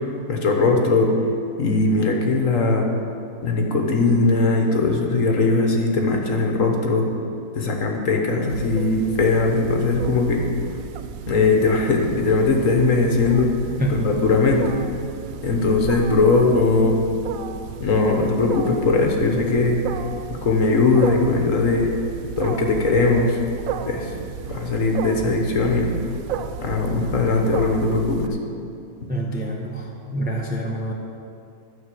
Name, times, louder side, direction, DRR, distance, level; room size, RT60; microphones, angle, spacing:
voice 1, 0.3-1.1 1.6-2.9 3.4-7.1 7.5-10.4 11.3-13.5 13.9-14.7 15.4-17.0 17.8-19.8 20.4-21.9 22.4-23.4 23.9-24.1 24.5-25.9 26.6-28.4, left 3 dB, 55° left, 1 dB, 1.4 m, -19 dB
Wild animals, 8.5-28.3, right 8 dB, 70° right, 0.8 m, -33 dB
voice 2, 29.1-30.9, right 1 dB, 10° right, -1 dB, 0.6 m, -27 dB
11.5 x 5.5 x 7.6 m, 2.6 s
omnidirectional pair, 1.8 m